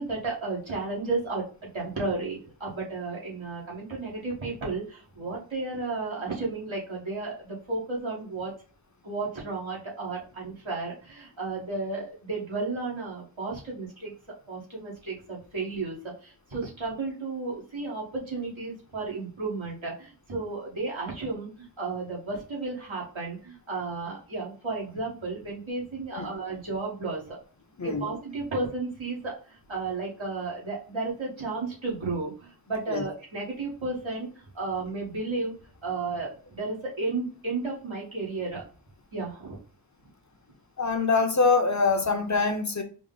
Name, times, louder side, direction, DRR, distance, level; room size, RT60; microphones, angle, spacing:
voice 1, 0.0-1.4 1.7-8.5 9.0-14.1 14.5-27.4 27.8-35.5 35.8-38.6 39.1-39.6, right 3 dB, 85° right, 1.6 m, -33 dB
voice 2, 40.8-42.8, left 4 dB, 40° left, 0.6 m, -24 dB
4.9 x 2.0 x 3.7 m
wide cardioid pair, 45°, 46 cm